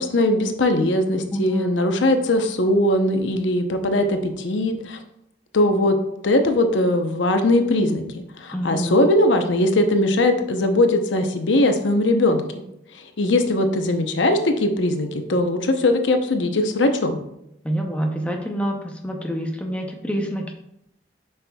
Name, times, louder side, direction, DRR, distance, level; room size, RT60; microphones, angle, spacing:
voice 1, 0.0-5.0 5.5-6.0 6.2-8.0 8.4-12.4 13.0-17.2, left 1 dB, 85° left, 6 dB, 0.8 m, -20 dB
voice 2, 8.5-9.0 17.6-18.8 19.0-20.5, equal, 5° left, 2 dB, 0.6 m, -26 dB
7.5 x 5.7 x 2.3 m, 0.80 s
head